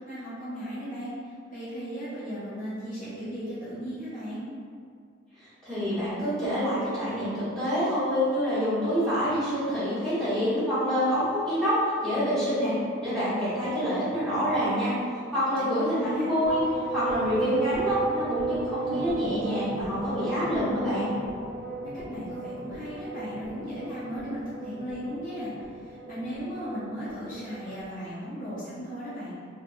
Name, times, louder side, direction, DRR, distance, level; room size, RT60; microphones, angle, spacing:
voice 1, 0.0-4.5 15.6-16.3 21.8-29.3, equal, 45° left, -11 dB, 0.7 m, -36 dB
voice 2, 5.4-11.7 12.0-14.9 15.3-16.6 16.9-21.1, equal, ahead, -15 dB, 1.4 m, -27 dB
sound 1, 16.0-27.9, right 3 dB, 60° right, 0.3 m, -35 dB
3.1 x 2.2 x 2.5 m, 2.1 s
head